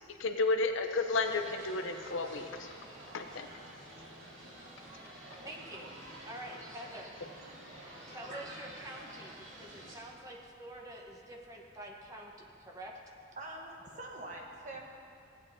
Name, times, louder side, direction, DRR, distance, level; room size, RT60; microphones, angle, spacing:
voice 1, 0.2-2.7 3.1-3.5, left 3 dB, 65° left, 6 dB, 0.6 m, -32 dB
sound 1, 1.1-9.9, right 1 dB, 70° right, 2.2 m, -50 dB
voice 2, 5.4-5.9 6.2-7.1 8.1-12.9, right 1 dB, 15° right, -1 dB, 1.0 m, -47 dB
voice 3, 7.7-8.4 13.4-14.8, right 2 dB, 35° right, 0 dB, 1.1 m, -45 dB
15.5 x 8.7 x 2.7 m, 2.5 s
head